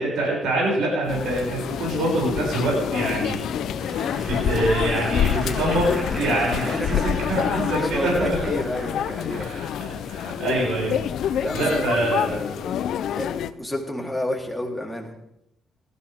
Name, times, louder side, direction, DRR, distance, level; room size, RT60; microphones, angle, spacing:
voice 1, 0.0-3.4 3.8-7.0 7.3-8.4 9.3-12.4, right 1 dB, 80° right, -3 dB, 7.0 m, -25 dB
sound 1, 1.0-13.4, left 2 dB, 25° left, 3.3 m, -39 dB
sound 2, 1.1-13.5, left 9 dB, 75° left, 0.6 m, -27 dB
Applause / Crowd, 3.8-9.5 10.1-10.2, right 1 dB, 40° right, 4.7 m, -38 dB
voice 2, 6.7-7.0 7.5-9.5 11.4-11.8 12.2-12.8 13.1-13.3 13.6-15.1, left 1 dB, ahead, 0 dB, 3.7 m, -30 dB
18.5 x 14.5 x 3.7 m, 0.82 s
cardioid pair, 90°, 0 cm